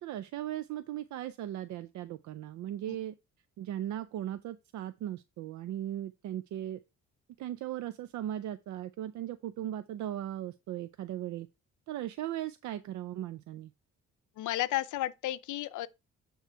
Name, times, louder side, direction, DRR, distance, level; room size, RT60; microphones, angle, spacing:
voice 1, 0.0-3.1 3.6-6.8 7.4-11.5 11.9-13.7, right 12 dB, 70° right, 0.5 m, -38 dB
voice 2, 14.4-15.9, left 15 dB, 80° left, 0.6 m, -32 dB
9.0 x 3.2 x 4.5 m
cardioid pair, 90°, 30 cm